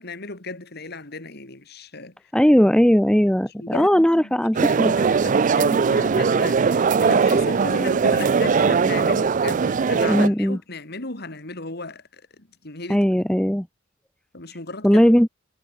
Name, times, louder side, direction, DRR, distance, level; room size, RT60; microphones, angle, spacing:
voice 1, 0.0-2.1 3.4-4.8 5.1-13.1 14.3-15.0, left 3 dB, 55° left, 3.2 m, -35 dB
voice 2, 2.3-4.9 10.1-10.6 12.9-13.7 14.8-15.3, equal, 5° left, 0.8 m, -18 dB
sound 1, 4.5-10.3, right 5 dB, 40° right, 0.4 m, -20 dB
head